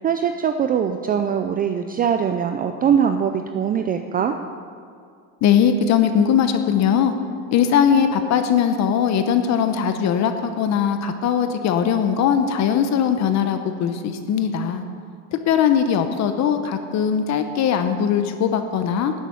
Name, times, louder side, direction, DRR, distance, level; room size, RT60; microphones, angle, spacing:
voice 1, 0.0-4.4, right 8 dB, 25° right, 7 dB, 0.4 m, -22 dB
voice 2, 5.4-7.1 7.5-14.8 15.3-19.1, left 8 dB, 40° left, 8 dB, 0.9 m, -20 dB
12.0 x 8.4 x 8.4 m, 2.3 s
cardioid pair, 140°, 40 cm